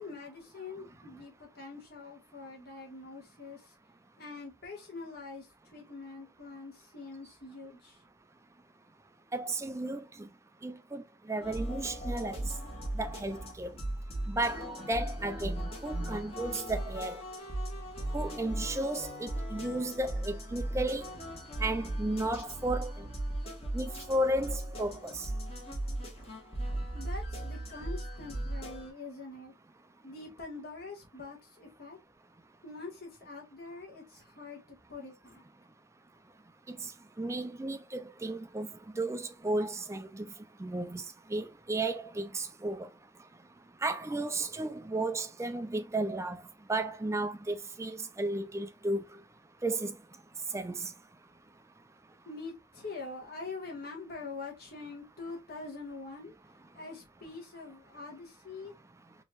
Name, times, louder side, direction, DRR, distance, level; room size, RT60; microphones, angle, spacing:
voice 1, 0.0-3.7 4.2-8.0 26.9-29.5 30.0-32.0 32.6-35.4 52.3-56.4 56.7-58.7, left 3 dB, 50° left, 1.8 m, -44 dB
voice 2, 9.3-10.3 10.6-12.5 13.0-13.7 14.3-17.2 18.1-21.1 21.6-23.1 23.7-25.3 36.7-36.9 37.2-38.7 38.9-40.3 40.6-41.0 41.3-42.9 43.8-46.4 46.7-49.0 49.6-50.0 50.5-50.9, right 2 dB, 15° right, 0.4 m, -34 dB
sound 1, 11.4-28.9, right 1 dB, 30° left, 1.7 m, -37 dB
4.4 x 3.0 x 2.4 m
head